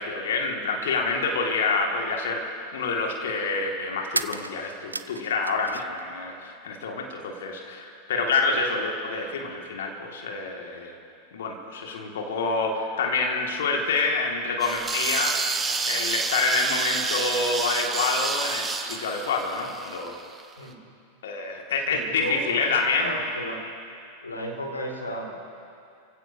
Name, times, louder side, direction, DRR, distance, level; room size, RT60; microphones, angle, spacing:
voice 1, 0.0-2.4 2.7-10.9 11.3-15.4 15.9-20.2 21.2-23.2, left 3 dB, 60° left, 1 dB, 1.9 m, -27 dB
sound 1, 1.8-1.9 4.1-6.0 6.3-7.2, right 2 dB, 85° right, 0.4 m, -34 dB
sound 2, 14.6-20.4, right 4 dB, 15° right, 1.1 m, -29 dB
voice 2, 20.6-20.9 21.8-23.6 24.2-25.3, equal, 80° left, 1 dB, 2.2 m, -34 dB
29.0 x 16.0 x 2.7 m, 2.5 s
figure-of-eight pair, 90°, 0 cm